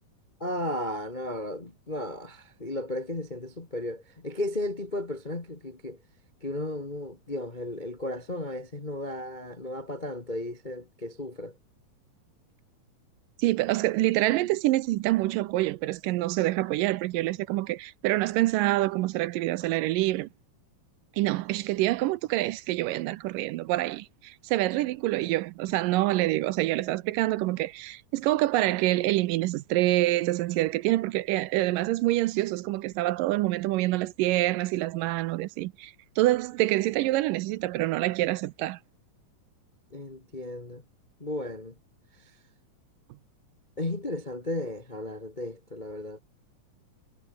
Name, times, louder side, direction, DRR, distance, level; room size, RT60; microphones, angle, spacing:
voice 1, 0.4-6.0 6.4-11.5 39.9-40.8 41.2-41.7 43.8-46.2, left 1 dB, 30° left, 0.9 m, -34 dB
voice 2, 13.4-20.3 21.2-38.8, right 17 dB, 80° right, 2.2 m, -26 dB
omnidirectional pair, 4.0 m